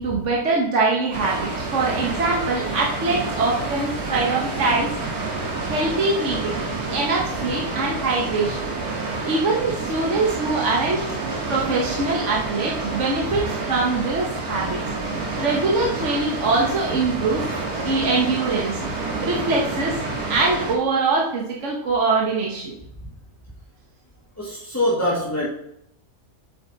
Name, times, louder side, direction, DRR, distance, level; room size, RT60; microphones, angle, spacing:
voice 1, 0.0-4.9 5.7-6.6 6.9-8.7 9.2-11.0 11.5-14.8 15.3-17.5 17.8-18.8 19.2-20.0 20.3-22.7, right 3 dB, 55° right, -2 dB, 1.5 m, -23 dB
Water, 1.1-20.7, right 3 dB, 80° right, 2.4 m, -29 dB
voice 2, 24.4-25.5, left 1 dB, 10° left, -4 dB, 1.5 m, -23 dB
8.4 x 7.5 x 4.0 m, 0.76 s
omnidirectional pair, 1.5 m